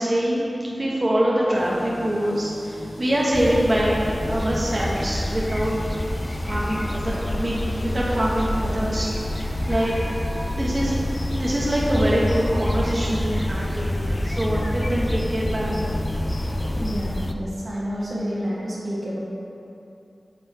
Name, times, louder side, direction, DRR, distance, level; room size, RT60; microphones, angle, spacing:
voice 1, 0.0-4.0 4.3-6.0 6.4-10.0 10.5-11.0 11.4-15.8, right 1 dB, 40° right, -6 dB, 0.9 m, -24 dB
sound 1, 1.5-16.8, equal, 70° left, 1.0 m, -38 dB
sound 2, 3.3-17.3, left 1 dB, 20° left, 0.3 m, -27 dB
voice 2, 16.7-19.2, equal, 80° right, -7 dB, 1.3 m, -29 dB
6.8 x 4.4 x 3.4 m, 2.7 s
wide cardioid pair, 80°, 0 cm